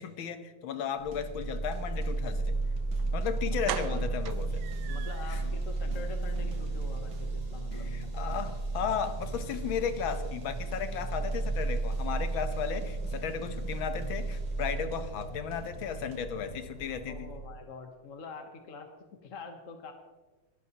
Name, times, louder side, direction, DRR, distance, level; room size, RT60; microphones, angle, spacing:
voice 1, 0.0-2.6 3.1-4.6 5.3-5.4 7.7-17.3, left 7 dB, 75° left, 9 dB, 1.8 m, -35 dB
sound 1, 1.0-17.6, right 3 dB, 20° left, 1.8 m, -34 dB
sound 2, 1.0-16.2, right 1 dB, 90° right, 2.4 m, -51 dB
sound 3, 3.0-3.1 3.7-5.4 5.8-5.9 6.3-6.4 6.7-6.8, right 13 dB, 75° right, 1.0 m, -39 dB
voice 2, 3.6-4.0 4.9-7.9 17.0-18.9 19.2-19.9, left 4 dB, 45° left, 4 dB, 1.2 m, -44 dB
22.0 x 12.0 x 2.9 m, 1.2 s
omnidirectional pair, 2.2 m